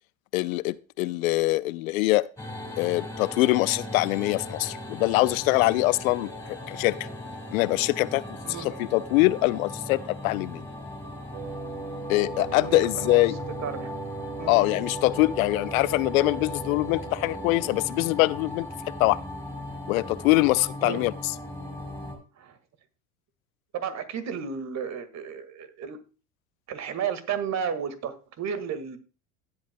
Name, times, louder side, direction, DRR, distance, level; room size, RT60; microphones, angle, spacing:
voice 1, 0.3-2.3 2.8-7.0 7.5-8.2 8.6-10.6 12.1-13.4 14.5-18.7 19.0-19.2 19.9-21.1, left 20 dB, 80° left, 0.6 m, -23 dB
sound 1, 2.4-22.2, left 1 dB, 5° left, 3.6 m, -38 dB
Wind instrument woodwind instrument, 11.3-17.9, right 5 dB, 60° right, 3.5 m, -39 dB
voice 2, 12.4-13.2 13.6-13.9 14.4-14.6 20.8-21.0 22.3-22.6 23.7-26.0 26.7-29.0, right 7 dB, 40° right, 1.8 m, -33 dB
17.5 x 8.1 x 2.2 m
hypercardioid pair, 85°, 41 cm